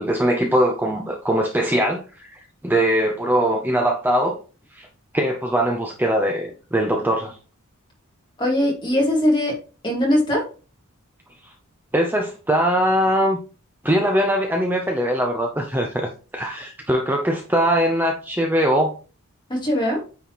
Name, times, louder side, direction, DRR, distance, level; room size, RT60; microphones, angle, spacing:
voice 1, 0.0-4.4 4.7-4.9 5.1-7.3 11.9-13.4 13.8-18.9, equal, 10° right, 2 dB, 0.6 m, -21 dB
voice 2, 8.4-9.6 9.8-10.4 19.5-20.0, left 1 dB, 20° left, -1 dB, 2.3 m, -20 dB
9.1 x 4.2 x 3.0 m, 0.35 s
head